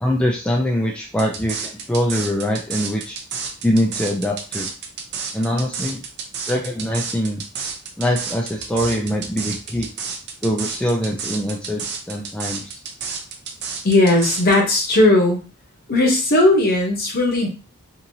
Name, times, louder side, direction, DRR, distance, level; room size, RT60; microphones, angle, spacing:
voice 1, 0.0-3.2 3.6-4.7 5.3-6.0 6.5-7.4 8.0-9.9 10.4-12.8, equal, 5° left, -1 dB, 0.3 m, -23 dB
sound 1, 1.2-14.6, right 5 dB, 50° right, 0.5 m, -30 dB
voice 2, 13.8-15.4 15.9-17.5, left 2 dB, 45° left, 1 dB, 0.8 m, -16 dB
3.0 x 2.6 x 2.6 m, 0.34 s
head